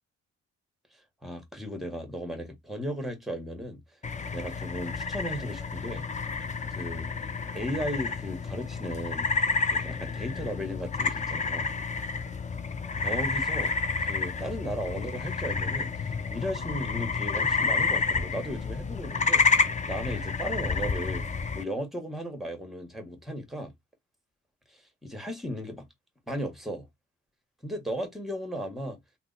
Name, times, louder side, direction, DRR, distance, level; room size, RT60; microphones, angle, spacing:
voice 1, 1.2-3.8 4.3-6.0 6.7-7.1 7.5-9.3 9.7-11.8 13.0-13.7 14.1-15.9 16.3-21.3 21.5-23.7 24.7-25.9 26.3-26.9 27.6-29.0, equal, ahead, 1.2 m, -35 dB
sound 1, 4.0-21.6, left 4 dB, 25° left, 0.5 m, -30 dB
2.7 x 2.2 x 3.9 m
cardioid pair, 90°, 30 cm